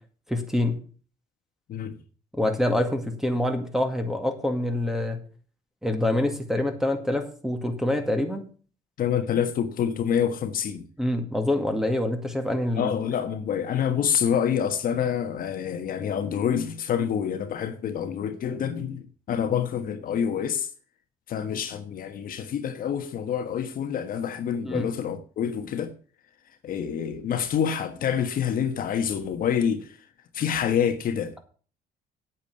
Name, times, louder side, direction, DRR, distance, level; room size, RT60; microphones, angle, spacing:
voice 1, 0.3-0.8 2.3-5.2 5.8-8.5 11.0-12.9 24.6-24.9, left 1 dB, ahead, 2.1 m, -26 dB
voice 2, 9.0-10.8 12.8-20.7 21.3-25.9 26.6-30.0 30.3-31.3, left 8 dB, 55° left, 1.4 m, -27 dB
8.6 x 8.4 x 6.8 m
cardioid pair, 110°, 17 cm